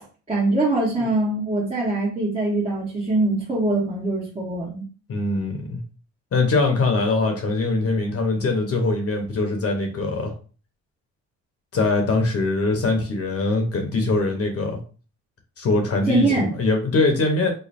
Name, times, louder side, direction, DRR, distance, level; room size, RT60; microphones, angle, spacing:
voice 1, 0.3-4.8 16.1-16.5, right 2 dB, 20° right, -7 dB, 1.3 m, -23 dB
voice 2, 5.1-5.8 6.3-10.3 11.7-14.8 15.6-17.5, left 3 dB, 50° left, 4 dB, 0.9 m, -22 dB
3.1 x 2.1 x 4.1 m, 0.38 s
cardioid pair, 90°, 30 cm